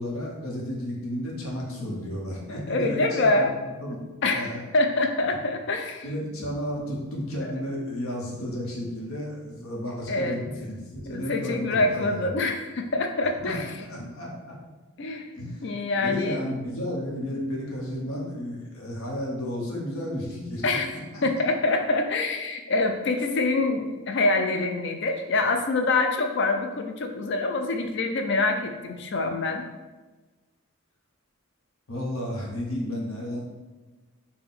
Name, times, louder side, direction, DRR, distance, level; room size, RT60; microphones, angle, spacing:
voice 1, 0.0-3.5 3.8-4.0 4.3-4.6 6.0-12.2 13.4-13.6 13.9-14.3 15.4-15.6 16.0-20.6 20.9-21.4 31.9-33.4, equal, 80° left, -2 dB, 0.9 m, -32 dB
voice 2, 2.5-3.5 4.2-6.1 10.1-10.4 11.1-14.1 15.0-15.3 15.6-16.4 20.6-20.9 21.2-29.6, left 2 dB, 55° left, 5 dB, 0.4 m, -25 dB
4.2 x 2.2 x 3.6 m, 1.2 s
head